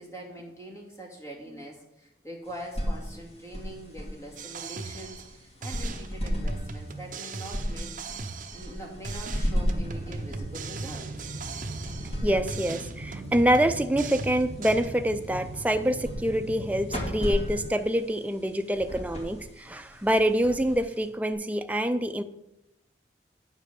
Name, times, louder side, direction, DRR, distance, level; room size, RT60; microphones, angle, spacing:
voice 1, 0.0-7.9 8.5-11.3, right 1 dB, 15° left, -2 dB, 2.2 m, -43 dB
sound 1, 2.4-21.3, equal, 35° left, 2.4 m, -36 dB
sound 2, 4.4-5.4 5.6-8.8 9.0-12.2 12.5-14.9, right 4 dB, 45° right, 0.8 m, -39 dB
sound 3, 9.3-17.7, right 1 dB, 70° right, 0.9 m, -39 dB
voice 2, 12.2-22.2, equal, 10° right, 8 dB, 0.4 m, -26 dB
8.9 x 5.5 x 6.5 m, 0.88 s
head